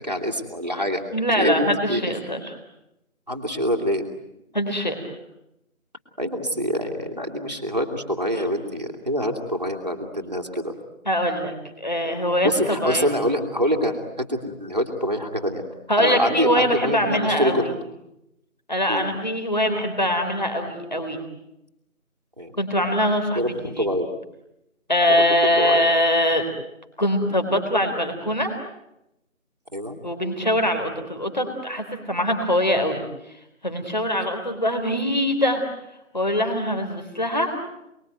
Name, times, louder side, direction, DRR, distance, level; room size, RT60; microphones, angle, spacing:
voice 1, 0.0-1.0 1.3-2.2 3.3-4.1 6.2-10.7 12.4-15.6 16.0-17.6 18.9-19.1 22.4-22.5 23.3-24.1 25.2-25.9 29.7-30.0, equal, 30° right, 3 dB, 2.6 m, -25 dB
voice 2, 1.1-2.5 4.5-5.0 11.1-13.1 15.9-17.7 18.7-21.2 22.6-23.9 24.9-26.4 27.0-28.5 30.0-33.0 33.6-35.6 36.1-37.6, equal, 30° left, 5 dB, 4.0 m, -23 dB
29.5 x 21.5 x 9.4 m, 0.88 s
figure-of-eight pair, 180°, 42 cm